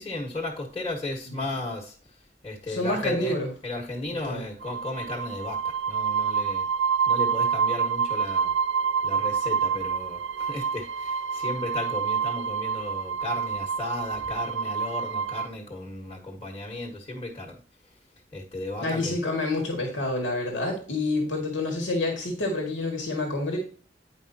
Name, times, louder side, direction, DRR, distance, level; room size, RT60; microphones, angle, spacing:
voice 1, 0.0-1.9 2.4-3.4 3.6-6.6 7.1-8.5 9.0-17.5 18.3-19.2, left 2 dB, 30° left, -3 dB, 1.4 m, -35 dB
voice 2, 2.7-3.5 4.1-4.4 18.8-23.6, left 2 dB, 90° left, 1 dB, 2.0 m, -28 dB
sound 1, 4.6-15.5, right 6 dB, 75° right, 0.4 m, -27 dB
9.7 x 5.3 x 2.8 m, 0.41 s
head